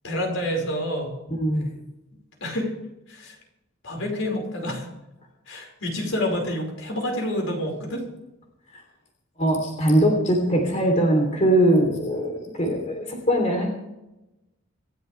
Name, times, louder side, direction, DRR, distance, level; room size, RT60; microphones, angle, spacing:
voice 1, 0.0-1.1 2.4-2.7 3.1-3.4 3.8-4.9 5.5-8.1, left 1 dB, 70° left, 1 dB, 5.3 m, -28 dB
voice 2, 1.4-1.7 9.4-13.7, right 1 dB, 35° left, 1 dB, 3.3 m, -21 dB
26.5 x 13.0 x 3.4 m, 0.94 s
head